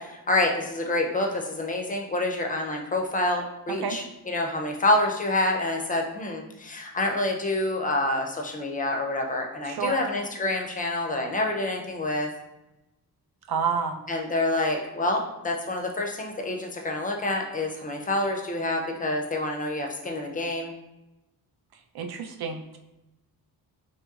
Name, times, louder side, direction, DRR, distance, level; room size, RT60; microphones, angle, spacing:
voice 1, 0.0-12.3 14.1-20.7, left 2 dB, 20° left, 2 dB, 0.4 m, -27 dB
voice 2, 9.7-10.0 13.5-14.0 21.9-22.8, right 6 dB, 75° right, 5 dB, 0.5 m, -29 dB
2.9 x 2.9 x 2.3 m, 0.96 s
wide cardioid pair, 115°, 38 cm